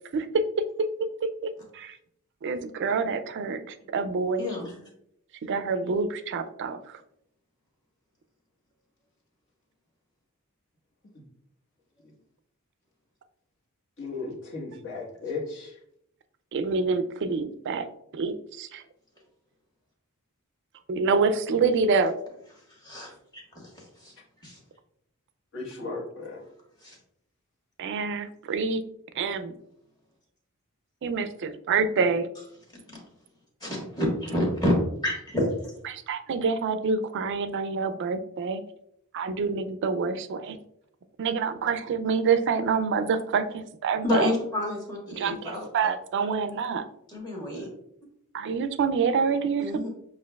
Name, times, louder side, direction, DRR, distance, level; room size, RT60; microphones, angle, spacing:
voice 1, 0.8-2.0 2.4-4.5 5.5-7.0 16.5-17.9 18.1-18.8 20.9-22.1 27.8-28.8 29.2-29.5 31.0-32.3 35.8-38.6 39.1-40.6 41.2-44.3 45.2-46.8 48.3-49.9, right 5 dB, 55° right, 10 dB, 0.4 m, -27 dB
voice 2, 4.4-4.8 22.8-23.7 24.0-24.1 24.4-24.6 26.8-27.0 33.6-34.7 35.0-35.5 44.0-45.6 47.1-47.7 49.6-49.9, left 1 dB, 20° left, -3 dB, 1.4 m, -28 dB
voice 3, 14.0-15.7 25.5-26.4, left 3 dB, 60° left, -3 dB, 1.4 m, -35 dB
7.3 x 2.5 x 2.3 m, 0.75 s
head